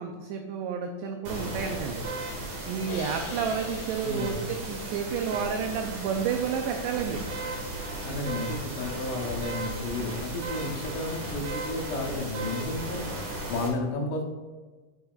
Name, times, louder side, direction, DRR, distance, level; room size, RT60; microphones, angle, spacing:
voice 1, 0.0-2.0 2.7-7.2, right 6 dB, 90° right, 4 dB, 2.4 m, -31 dB
sound 1, 1.2-13.7, right 2 dB, 60° right, 2.5 m, -36 dB
Crash cymbal, 2.9-5.9, left 3 dB, 60° left, 3.4 m, -44 dB
voice 2, 4.0-4.4 8.1-13.1 13.5-14.2, left 2 dB, 80° left, 0 dB, 2.9 m, -32 dB
10.5 x 5.5 x 2.3 m, 1.3 s
omnidirectional pair, 5.4 m